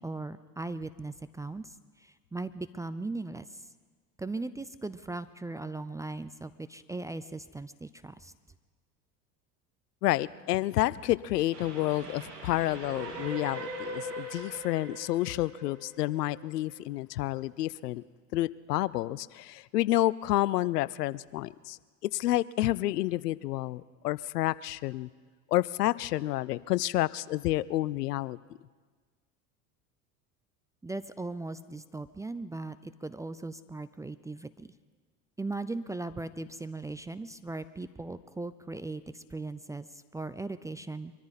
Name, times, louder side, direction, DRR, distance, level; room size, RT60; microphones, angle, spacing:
voice 1, 0.0-3.6 4.2-8.3 30.8-34.7 35.4-41.1, right 2 dB, 10° right, 12 dB, 0.4 m, -38 dB
voice 2, 10.0-18.0 18.3-21.8 22.0-25.1 25.5-28.4, left 16 dB, 80° left, 20 dB, 0.6 m, -29 dB
Train, 11.5-16.8, right 1 dB, 85° right, 2.9 m, -41 dB
24.0 x 14.0 x 4.1 m, 1.4 s
hypercardioid pair, 75°, 47 cm